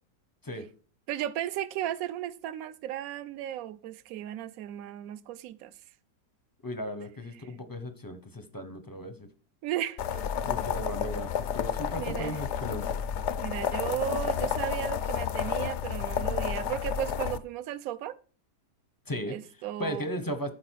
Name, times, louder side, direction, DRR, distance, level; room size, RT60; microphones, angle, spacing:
voice 1, 1.1-5.7 9.6-10.2 12.0-12.4 13.4-18.2 19.3-20.0, right 12 dB, 65° right, 1.0 m, -35 dB
voice 2, 6.6-9.3 10.4-13.0 19.1-20.5, equal, 20° left, 0.5 m, -36 dB
sound 1, 10.0-17.4, left 8 dB, 65° left, 0.7 m, -31 dB
12.0 x 4.9 x 4.6 m
omnidirectional pair, 1.8 m